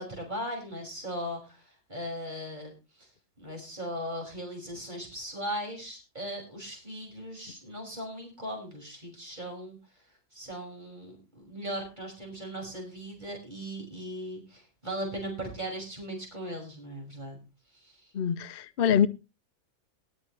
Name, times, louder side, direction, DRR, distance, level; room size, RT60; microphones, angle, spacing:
voice 1, 0.0-2.7 3.0-3.1 3.4-9.8 10.3-17.4 17.7-18.0, equal, 25° right, 6.3 m, -38 dB
voice 2, 18.1-19.1, left 8 dB, 55° left, 0.6 m, -25 dB
19.5 x 8.9 x 3.3 m
omnidirectional pair, 1.8 m